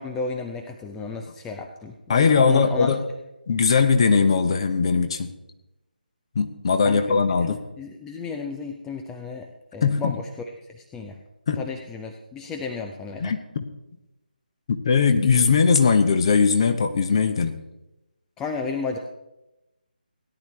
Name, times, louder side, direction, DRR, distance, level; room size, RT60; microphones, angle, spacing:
voice 1, 0.0-2.9 6.8-7.2 7.4-9.5 9.7-10.3 10.9-11.2 11.6-13.3 18.4-19.0, left 4 dB, 5° left, 3 dB, 0.4 m, -33 dB
voice 2, 2.1-3.0 3.5-5.3 6.3-7.6 9.8-10.1 11.5-11.6 13.2-13.6 14.8-17.6, left 5 dB, 35° left, 8 dB, 1.0 m, -20 dB
17.5 x 10.5 x 3.2 m, 0.94 s
figure-of-eight pair, 150°, 5 cm